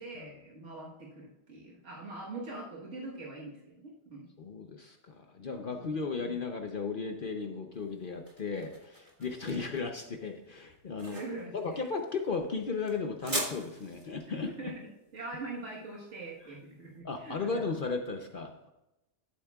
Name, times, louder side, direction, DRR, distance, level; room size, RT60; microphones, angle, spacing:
voice 1, 0.0-4.3 5.7-6.3 9.4-9.7 11.0-11.8 14.3-14.9 15.1-17.6, right 2 dB, 85° right, -3 dB, 1.8 m, -43 dB
voice 2, 4.4-11.2 11.5-14.7 17.0-18.7, left 4 dB, 50° left, 4 dB, 0.8 m, -35 dB
sound 1, 7.7-16.8, right 1 dB, 40° right, 2.0 m, -42 dB
11.5 x 8.3 x 2.4 m, 0.94 s
omnidirectional pair, 1.2 m